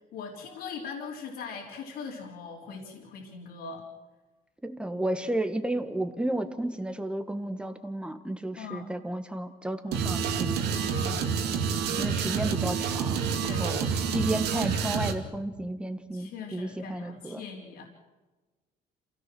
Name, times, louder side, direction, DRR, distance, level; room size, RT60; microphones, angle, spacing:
voice 1, 0.1-3.9 8.6-8.9 10.7-11.4 13.3-14.4 16.1-17.8, left 5 dB, 80° left, -4 dB, 3.9 m, -41 dB
voice 2, 4.6-10.7 12.0-13.3 13.6-13.9 14.1-17.4, right 1 dB, 5° right, 8 dB, 1.6 m, -32 dB
sound 1, 9.9-15.2, right 6 dB, 80° right, 2.3 m, -28 dB
27.5 x 17.0 x 6.2 m, 1.2 s
cardioid pair, 110°, 17 cm